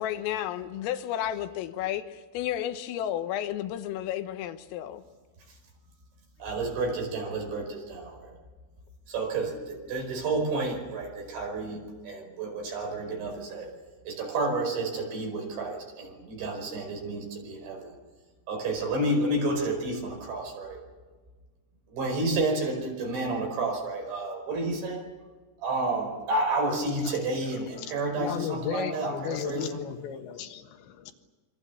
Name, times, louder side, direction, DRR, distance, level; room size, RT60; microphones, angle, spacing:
voice 1, 0.0-5.0, left 11 dB, 85° left, 9 dB, 3.8 m, -32 dB
voice 2, 6.4-8.3 9.1-13.7 14.1-18.0 18.5-20.8 21.9-25.0 25.6-29.8, right 2 dB, 65° right, 1 dB, 7.1 m, -30 dB
voice 3, 27.8-31.1, left 8 dB, 70° left, 6 dB, 3.5 m, -35 dB
27.0 x 24.0 x 7.1 m, 1.4 s
omnidirectional pair, 5.8 m